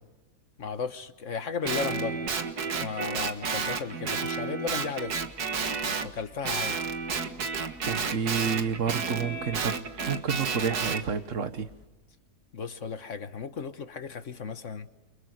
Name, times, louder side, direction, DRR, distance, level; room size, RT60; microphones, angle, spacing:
voice 1, 0.6-2.3 2.7-5.2 6.0-6.8 12.5-14.9, left 5 dB, 50° left, 10 dB, 1.6 m, -35 dB
Guitar, 1.6-6.1 6.4-11.0, right 5 dB, 70° right, 2.1 m, -31 dB
sound 1, 5.1-11.9, left 1 dB, 5° left, 4.6 m, -55 dB
voice 2, 7.9-9.8 10.1-11.7, right 6 dB, 50° right, 10 dB, 1.7 m, -29 dB
29.5 x 24.5 x 8.1 m, 1.1 s
omnidirectional pair, 1.7 m